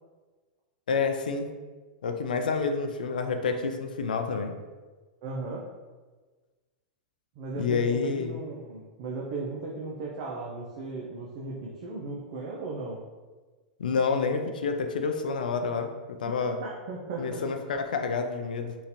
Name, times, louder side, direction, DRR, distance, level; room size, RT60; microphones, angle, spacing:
voice 1, 0.9-1.5 2.0-4.6 7.6-8.4 13.8-16.6 17.2-18.8, left 5 dB, 80° left, 6 dB, 0.3 m, -28 dB
voice 2, 5.2-5.7 7.4-13.0 16.6-17.4, right 3 dB, 55° right, -3 dB, 0.6 m, -36 dB
3.7 x 2.5 x 2.8 m, 1.3 s
hypercardioid pair, 105°, 4 cm